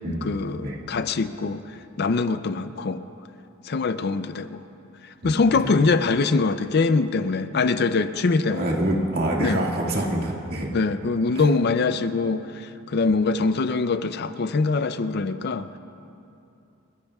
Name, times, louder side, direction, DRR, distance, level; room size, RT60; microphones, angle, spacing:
voice 1, 0.0-1.6 2.0-3.0 3.7-4.6 5.2-8.7 9.4-9.6 10.7-15.8, left 4 dB, 50° left, 11 dB, 0.5 m, -23 dB
voice 2, 5.2-5.8 8.5-10.7 11.3-11.6, right 1 dB, 45° right, -2 dB, 2.0 m, -26 dB
30.0 x 15.5 x 2.4 m, 2.7 s
head